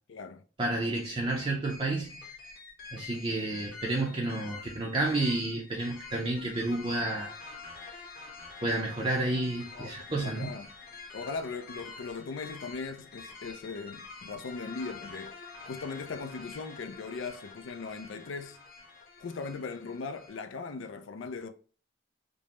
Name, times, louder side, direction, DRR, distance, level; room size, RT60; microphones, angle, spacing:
voice 1, 0.1-0.4 9.7-10.7 11.1-15.4 15.7-18.6 19.2-21.5, left 4 dB, 75° left, 0.4 m, -39 dB
voice 2, 0.6-2.3 2.9-7.3 7.8-8.0 8.6-10.6, right 2 dB, 25° right, 0.6 m, -31 dB
sound 1, 0.9-20.4, left 4 dB, 50° left, 1.1 m, -47 dB
5.1 x 2.1 x 3.0 m
head